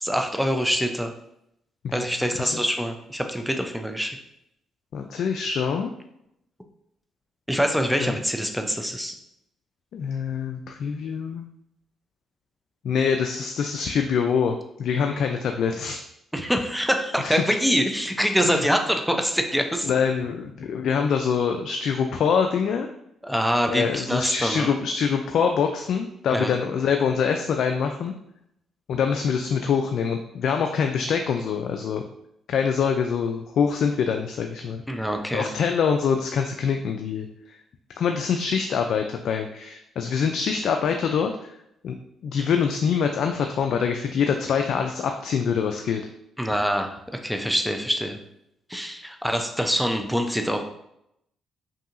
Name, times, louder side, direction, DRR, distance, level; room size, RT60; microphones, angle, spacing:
voice 1, 0.0-1.1 1.9-4.2 7.5-9.2 16.3-19.9 23.2-24.7 26.3-26.5 34.9-35.5 46.4-48.2 48.7-50.6, equal, ahead, 5 dB, 0.6 m, -25 dB
voice 2, 1.8-2.6 4.9-5.9 8.0-8.1 9.9-11.4 12.8-16.0 17.2-17.4 18.4-18.6 19.8-22.9 23.7-28.1 28.9-32.0 32.5-35.1 35.3-37.3 38.0-41.5 41.8-42.0 42.2-46.0, left 6 dB, 70° left, 5 dB, 0.3 m, -25 dB
5.3 x 2.7 x 2.5 m, 0.79 s
cardioid pair, 75°, 0 cm